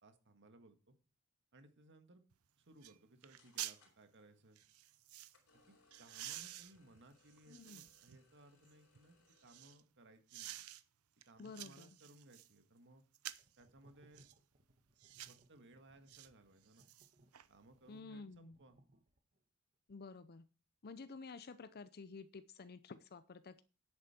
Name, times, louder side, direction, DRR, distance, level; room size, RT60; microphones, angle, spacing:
voice 1, 0.0-0.9 1.5-2.2 2.6-4.6 5.5-9.2 9.4-10.6 11.2-13.0 13.6-14.3 15.3-16.9 17.5-18.8, right 2 dB, 55° right, 7 dB, 1.7 m, -63 dB
sound 1, 2.3-2.4 2.8-3.0 3.2-3.8 4.6-5.4 5.9-8.2 8.7-9.8 10.3-10.8 11.2-12.5 13.1-13.6 14.1-14.4 15.0-15.4 16.1-16.3 16.6-17.5 17.8-17.9, right 14 dB, 75° right, 0.7 m, -50 dB
sound 2, 3.1-3.2 3.4-4.3 5.3-9.8, left 4 dB, 70° left, 4.1 m, -72 dB
voice 2, 7.5-7.9 11.4-11.9 17.9-18.6 19.9-20.5 20.8-23.6, left 4 dB, 45° left, 13 dB, 0.6 m, -51 dB
sound 3, 13.3-19.4, right 1 dB, 40° right, 1.4 m, -69 dB
10.5 x 8.7 x 4.4 m, 0.34 s
head